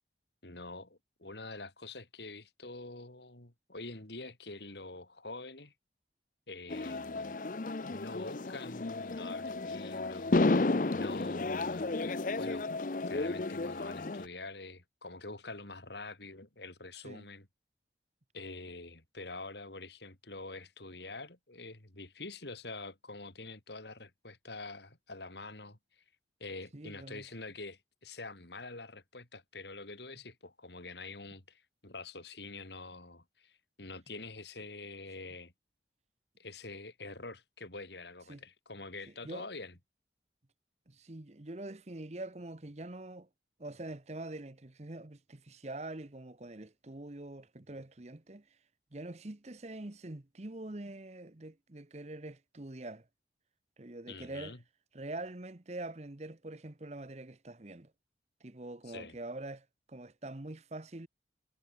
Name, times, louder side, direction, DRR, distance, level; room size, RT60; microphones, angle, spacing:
voice 1, 0.4-5.7 6.5-7.4 7.9-10.3 10.9-12.7 13.1-17.5 18.3-26.0 26.4-35.5 36.4-39.8 54.1-54.6 58.8-59.2, left 3 dB, 70° left, 3.3 m, -46 dB
sound 1, 6.7-14.3, left 2 dB, 45° left, 0.6 m, -32 dB
voice 2, 26.7-27.2 38.3-38.4 39.2-39.5 40.9-43.3 43.6-48.5 48.9-53.1 53.8-54.5 54.9-57.9 58.4-61.1, right 2 dB, 35° right, 1.0 m, -44 dB
head